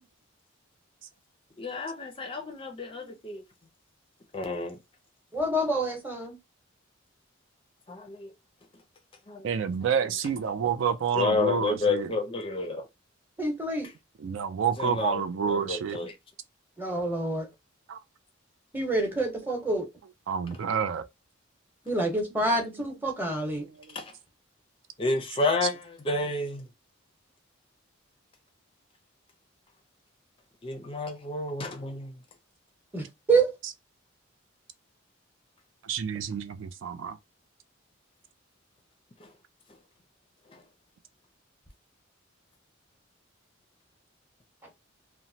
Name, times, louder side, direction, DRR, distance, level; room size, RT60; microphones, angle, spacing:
voice 1, 1.6-3.4 4.3-4.8 7.9-8.3 8.7-8.8 9.3-10.0 11.1-12.9 13.8-13.9 14.8-16.2 23.9-24.1 25.0-26.7 30.6-32.2 39.2-39.3 40.5-40.6, left 3 dB, 25° left, 0.5 m, -31 dB
voice 2, 5.3-6.4 13.4-13.9 16.8-17.5 18.7-19.9 21.8-23.6 32.9-33.5, right 2 dB, 10° right, 0.9 m, -27 dB
voice 3, 9.4-12.1 14.2-16.0 17.9-18.0 20.3-21.0 23.6-24.0 35.8-37.2, right 7 dB, 65° right, 0.3 m, -29 dB
2.9 x 2.0 x 2.7 m
head